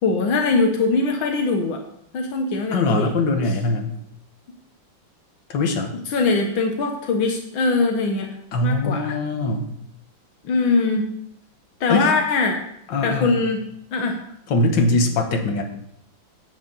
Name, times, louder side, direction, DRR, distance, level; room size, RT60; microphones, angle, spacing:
voice 1, 0.0-1.8 2.1-3.1 6.1-8.3 8.6-9.2 10.4-11.1 11.8-12.6 13.0-13.7 13.9-14.2, left 3 dB, 85° left, 3 dB, 2.0 m, -21 dB
voice 2, 2.7-3.9 5.5-6.0 8.5-9.7 11.9-12.1 12.9-13.4 14.5-15.6, left 2 dB, 70° left, 4 dB, 2.1 m, -21 dB
9.7 x 5.8 x 8.2 m, 0.76 s
omnidirectional pair, 2.1 m